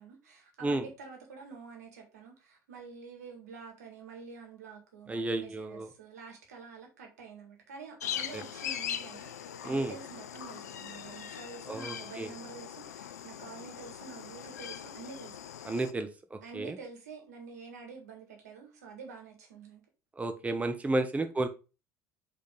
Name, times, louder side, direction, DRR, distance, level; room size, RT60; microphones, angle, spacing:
voice 1, 0.0-16.1 16.4-19.8, right 5 dB, 80° right, 1.8 m, -48 dB
voice 2, 5.1-5.9 8.3-8.4 9.6-9.9 11.7-12.3 15.6-16.8 20.2-21.5, right 2 dB, 15° right, 1.0 m, -32 dB
sound 1, 8.0-15.9, left 9 dB, 80° left, 0.5 m, -41 dB
5.2 x 4.4 x 5.3 m
hypercardioid pair, 65°, 9 cm